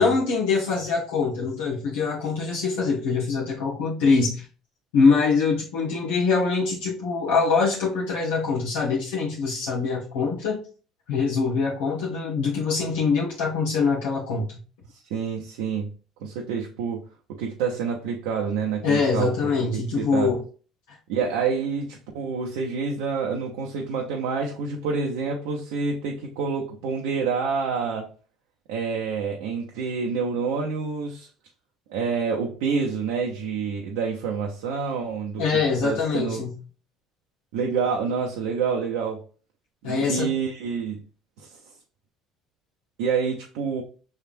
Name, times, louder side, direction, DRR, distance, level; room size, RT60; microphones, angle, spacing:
voice 1, 0.0-4.5 4.9-10.6 11.1-14.6 18.8-20.4 20.9-21.0 35.4-36.5 39.8-40.3, left 4 dB, 75° left, 1.1 m, -23 dB
voice 2, 14.9-15.9 16.2-17.0 17.3-19.3 19.7-20.3 21.1-28.1 28.7-31.3 31.9-35.5 35.8-36.4 37.5-39.2 39.8-41.0 41.4-41.6 43.0-43.8, right 5 dB, 75° right, 0.7 m, -27 dB
5.6 x 3.4 x 2.5 m
hypercardioid pair, 65°, 0 cm